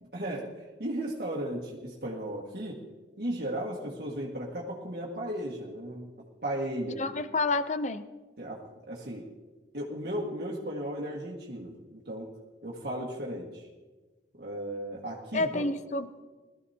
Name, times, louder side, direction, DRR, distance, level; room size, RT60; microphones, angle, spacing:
voice 1, 0.0-2.8 3.2-7.2 8.4-9.3 9.7-12.3 12.6-13.7 14.4-15.7, right 1 dB, 60° right, -4 dB, 1.7 m, -36 dB
voice 2, 7.0-8.0 15.3-16.2, left 3 dB, 40° left, 11 dB, 0.6 m, -29 dB
21.5 x 14.0 x 2.8 m, 1.3 s
head